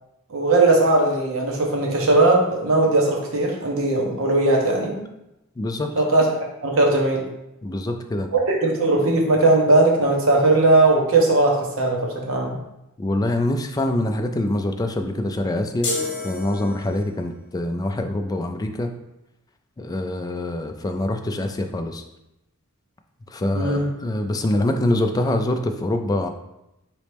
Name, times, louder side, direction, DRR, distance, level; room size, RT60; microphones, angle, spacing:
voice 1, 0.3-4.9 6.0-6.3 6.6-7.2 8.3-12.5 23.5-23.9, right 2 dB, 70° right, 0 dB, 0.9 m, -18 dB
voice 2, 5.6-5.9 7.6-8.3 13.0-15.9 16.2-18.9 19.8-22.0 23.3-26.3, left 1 dB, 15° left, 5 dB, 0.3 m, -24 dB
sound 1, 15.8-17.2, left 3 dB, 55° left, 0.9 m, -29 dB
4.1 x 3.0 x 3.3 m, 0.89 s
head